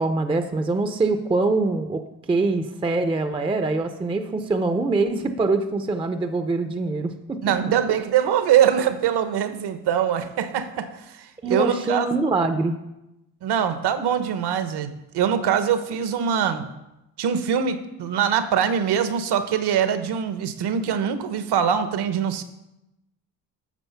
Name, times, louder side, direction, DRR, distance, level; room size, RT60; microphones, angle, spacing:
voice 1, 0.0-2.0 2.3-7.4 11.4-12.8, right 3 dB, 15° right, 8 dB, 0.4 m, -24 dB
voice 2, 7.4-12.1 13.4-16.7 17.2-22.4, right 8 dB, 75° right, 10 dB, 1.1 m, -23 dB
13.0 x 7.4 x 5.7 m, 0.93 s
cardioid pair, 180°, 39 cm